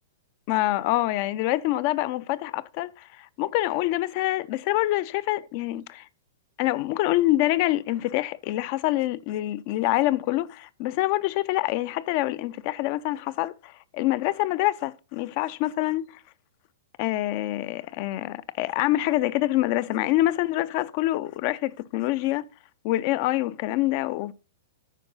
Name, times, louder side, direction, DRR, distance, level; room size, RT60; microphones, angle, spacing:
voice 1, 0.5-6.1 6.6-16.1 17.0-22.4 22.8-24.3, left 16 dB, 40° left, 0.4 m, -26 dB
9.0 x 4.8 x 5.5 m
hypercardioid pair, 150°, 0 cm